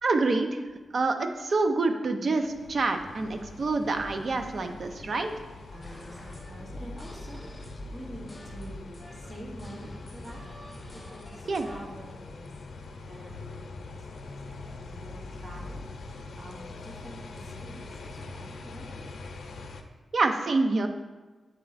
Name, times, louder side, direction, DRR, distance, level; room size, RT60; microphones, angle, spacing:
voice 1, 0.0-0.6 0.9-5.3 11.5-11.7 20.1-20.9, right 3 dB, 50° right, 6 dB, 0.5 m, -27 dB
sound 1, 2.4-19.8, left 3 dB, 90° left, 0.6 m, -43 dB
voice 2, 5.7-10.4 10.9-12.5 13.1-19.1, equal, 30° right, -2 dB, 1.2 m, -47 dB
sound 2, 5.8-11.8, equal, 10° left, 1.0 m, -46 dB
7.8 x 4.3 x 4.0 m, 1.3 s
wide cardioid pair, 165°, 0 cm